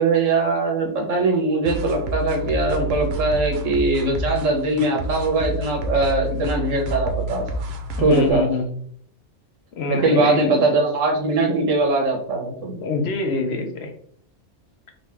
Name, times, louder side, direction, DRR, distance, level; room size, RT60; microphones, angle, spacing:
voice 1, 0.0-7.4 8.0-8.5 9.9-12.8, right 2 dB, 90° right, 1 dB, 1.3 m, -21 dB
sound 1, 1.6-8.3, right 1 dB, 65° right, 0.8 m, -29 dB
voice 2, 8.0-8.8 9.8-10.5 12.8-13.9, left 3 dB, 65° left, 5 dB, 0.8 m, -25 dB
4.0 x 2.2 x 3.3 m, 0.63 s
omnidirectional pair, 1.3 m